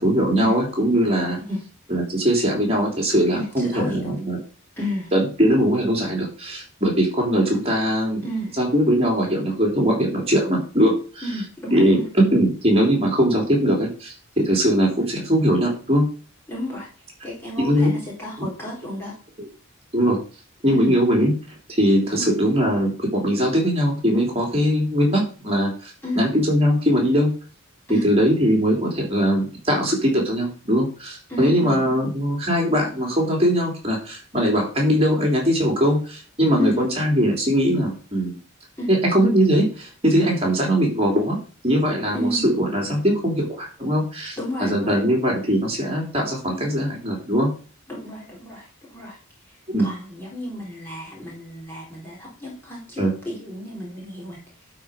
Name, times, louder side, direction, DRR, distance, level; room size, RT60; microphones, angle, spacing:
voice 1, 0.0-1.4 1.9-4.4 5.1-8.2 8.6-11.2 11.7-16.1 17.6-17.9 18.4-18.5 19.4-19.5 19.9-20.2 20.6-21.3 21.8-25.9 26.2-27.3 27.9-38.4 38.9-41.4 41.6-47.5 49.7-49.9 53.0-53.1, equal, 25° right, 0 dB, 3.4 m, -21 dB
voice 2, 3.3-4.1 4.8-5.1 8.2-8.5 11.2-12.1 16.5-16.9 17.2-19.1 20.7-21.0 22.2-22.4 26.0-26.2 27.9-28.1 31.3-31.8 36.6-36.8 38.8-38.9 42.1-42.5 44.4-45.0 47.9-49.2 49.8-54.4, equal, 10° left, -5 dB, 3.8 m, -31 dB
11.5 x 5.0 x 5.3 m, 0.38 s
head